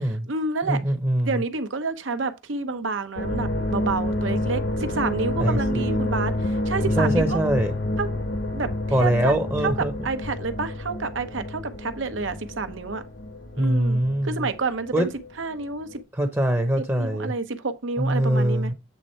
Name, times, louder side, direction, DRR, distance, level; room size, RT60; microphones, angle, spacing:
voice 1, 0.0-0.8 1.2-7.4 8.0-8.1 8.5-8.7 9.0-9.3 9.6-13.0 13.5-15.1 15.4-16.0 17.0-18.7, right 4 dB, 80° right, 0.9 m, -29 dB
voice 2, 0.6-1.4 5.4-6.0 7.0-7.7 8.9-9.9 13.6-14.3 14.9-15.1 16.2-17.3 18.0-18.7, right 1 dB, 10° right, 0.7 m, -23 dB
sound 1, 3.2-15.3 15.5-16.0, left 1 dB, 65° left, 1.1 m, -28 dB
8.2 x 3.5 x 4.3 m
head